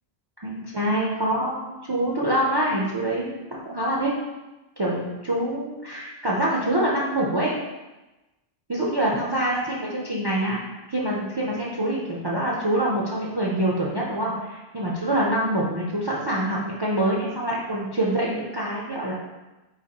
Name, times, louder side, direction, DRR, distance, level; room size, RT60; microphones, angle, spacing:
voice 1, 0.4-4.1 4.8-7.5 8.7-10.6 10.9-19.1, right 1 dB, 35° right, -4 dB, 0.5 m, -25 dB
4.1 x 2.9 x 4.1 m, 1.1 s
omnidirectional pair, 1.1 m